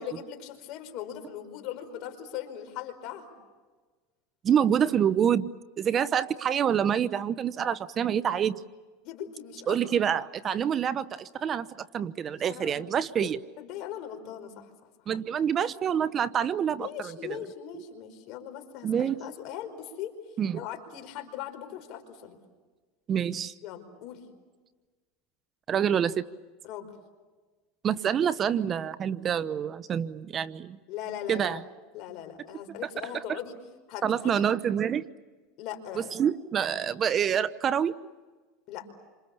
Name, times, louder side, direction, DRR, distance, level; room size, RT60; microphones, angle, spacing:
voice 1, 0.0-3.3 9.0-9.8 10.6-10.7 12.5-12.8 13.2-14.7 15.1-15.2 16.8-20.1 20.5-22.4 23.6-24.2 26.6-26.9 30.9-31.6 31.9-33.6 33.9-34.4 35.6-36.1 38.7-38.9, left 10 dB, 55° left, 6 dB, 4.9 m, -39 dB
voice 2, 4.4-5.5 5.8-8.6 9.7-13.4 15.1-17.4 17.7-17.8 18.8-19.2 20.4-20.6 23.1-23.5 25.7-26.2 27.8-30.8 31.3-31.6 34.0-35.1 36.0-38.0, right 8 dB, 30° right, 16 dB, 0.8 m, -27 dB
29.5 x 26.5 x 7.1 m, 1.3 s
supercardioid pair, 125°, 0 cm